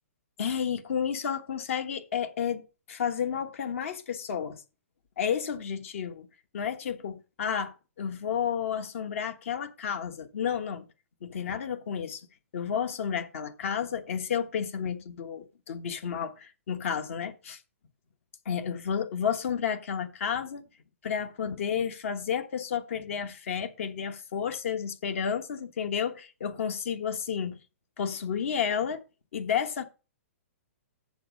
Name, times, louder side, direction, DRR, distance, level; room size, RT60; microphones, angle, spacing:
voice 1, 0.4-2.6 2.9-4.6 5.2-6.3 6.5-10.8 11.2-12.2 12.5-17.6 18.5-20.6 21.0-27.6 28.0-29.0 29.3-29.8, left 7 dB, 65° left, 1.3 m, -31 dB
7.2 x 7.0 x 5.2 m
hypercardioid pair, 150°, 8 cm